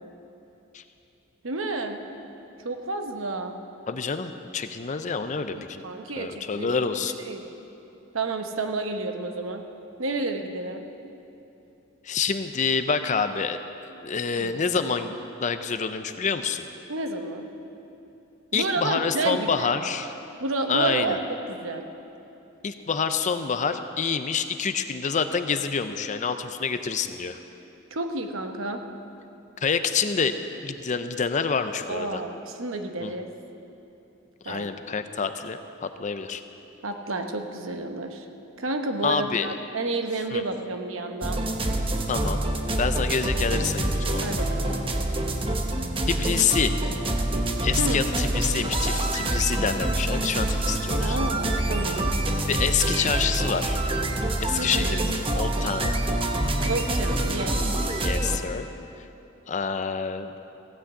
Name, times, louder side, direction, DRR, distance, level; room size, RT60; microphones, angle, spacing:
voice 1, 1.4-2.0 2.6-3.6 5.5-6.8 7.3-7.4 8.1-9.6 10.0-10.9 14.3-14.5 16.9-17.5 18.5-19.7 20.4-21.8 27.9-28.8 31.9-33.2 34.4-34.7 36.8-38.2 38.6-41.4 44.2-44.9 47.8-48.0 51.0-52.1 54.6-55.0 56.6-57.7, right 2 dB, 70° right, 5 dB, 1.0 m, -30 dB
voice 2, 3.9-5.8 6.2-7.1 12.0-13.6 14.0-15.1 15.4-16.6 18.5-20.2 20.7-21.2 22.6-27.4 29.6-32.2 33.0-33.1 34.4-36.4 39.0-39.5 40.3-40.4 42.1-42.4 42.8-44.2 46.1-46.8 47.6-51.2 52.5-53.8 54.4-55.9 58.0-58.7 59.5-60.3, left 5 dB, 35° left, 9 dB, 0.5 m, -27 dB
sound 1, 41.2-58.4, right 1 dB, 25° right, 0.9 m, -26 dB
16.0 x 6.2 x 8.2 m, 2.9 s
head